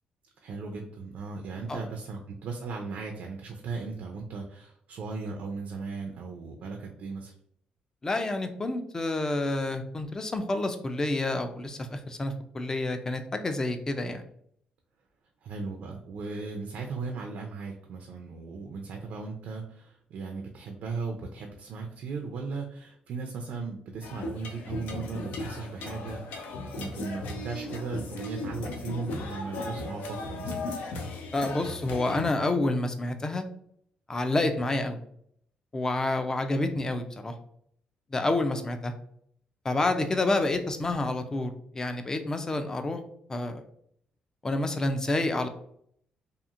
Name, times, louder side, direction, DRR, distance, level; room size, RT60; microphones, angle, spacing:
voice 1, 0.4-7.3 15.4-30.7, right 4 dB, 70° right, 2 dB, 0.4 m, -37 dB
voice 2, 8.0-14.2 31.3-33.4 34.1-35.0 35.7-37.3 38.1-38.9 39.6-43.0 43.3-43.6 44.4-45.5, left 2 dB, 20° left, 7 dB, 0.3 m, -28 dB
sound 1, 24.0-32.3, left 2 dB, 85° left, 0.4 m, -36 dB
2.8 x 2.4 x 2.4 m, 0.67 s
cardioid pair, 120°, 3 cm